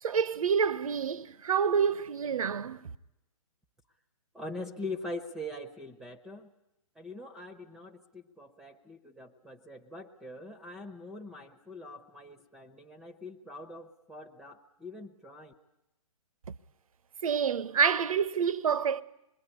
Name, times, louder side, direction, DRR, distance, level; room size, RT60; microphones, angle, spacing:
voice 1, 0.0-2.9 17.2-19.0, right 7 dB, 65° right, 0.9 m, -28 dB
voice 2, 4.3-6.5 6.9-15.5, left 2 dB, ahead, 1.0 m, -43 dB
26.0 x 21.5 x 9.9 m
hypercardioid pair, 135°, 19 cm